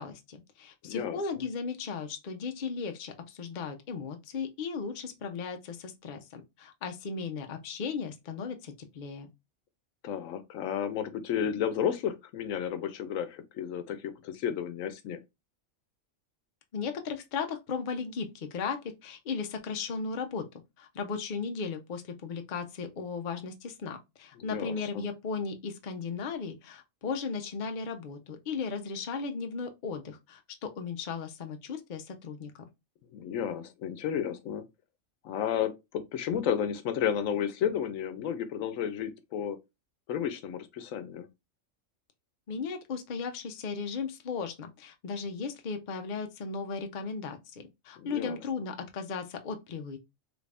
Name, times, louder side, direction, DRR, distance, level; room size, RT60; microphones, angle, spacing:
voice 1, 0.0-9.3 16.7-20.5 20.8-32.7 42.5-50.0, left 5 dB, 50° left, 0.6 m, -36 dB
voice 2, 0.8-1.2 10.0-15.2 24.4-24.8 33.1-34.7 35.2-39.6 40.1-41.3 48.0-48.4, left 9 dB, 85° left, 1.0 m, -32 dB
3.3 x 2.5 x 3.2 m
omnidirectional pair, 1.3 m